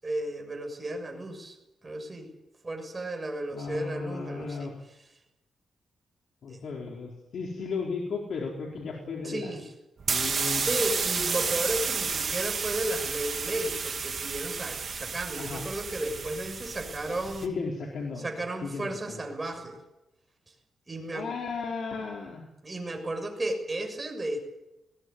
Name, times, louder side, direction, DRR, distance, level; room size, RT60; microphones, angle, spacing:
voice 1, 0.0-1.6 1.8-2.3 2.6-4.7 6.5-6.6 9.2-9.7 10.6-17.5 18.2-19.8 20.9-21.3 22.6-24.4, right 1 dB, 20° right, 3 dB, 7.0 m, -34 dB
voice 2, 3.5-4.7 6.4-9.5 10.1-10.7 15.4-15.6 17.4-18.3 18.6-19.2 21.1-22.4, left 4 dB, 65° left, -1 dB, 4.4 m, -35 dB
sound 1, 10.0-17.5, right 5 dB, 40° right, 2.6 m, -31 dB
21.0 x 17.0 x 9.8 m, 0.93 s
wide cardioid pair, 130°, 0 cm